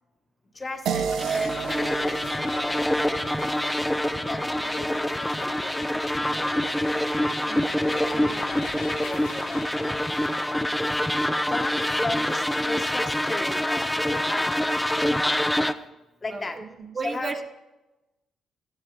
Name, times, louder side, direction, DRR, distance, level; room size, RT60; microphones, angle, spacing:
sound 1, 0.5-10.6, left 6 dB, 75° left, 1.6 m, -45 dB
voice 1, 0.5-3.3 4.3-6.6 7.7-8.7 9.0-10.1 11.5-14.6 15.1-15.2 16.2-16.6 17.0-17.3, left 2 dB, 30° left, 5 dB, 1.3 m, -36 dB
sound 2, 0.9-5.6, right 6 dB, 75° right, 0.8 m, -33 dB
sound 3, 1.2-15.7, left 1 dB, 5° left, 0.6 m, -26 dB
voice 2, 7.4-7.7 16.3-17.5, right 3 dB, 40° right, 5 dB, 1.2 m, -34 dB
17.5 x 12.0 x 3.3 m, 1.0 s
cardioid pair, 90°, 0 cm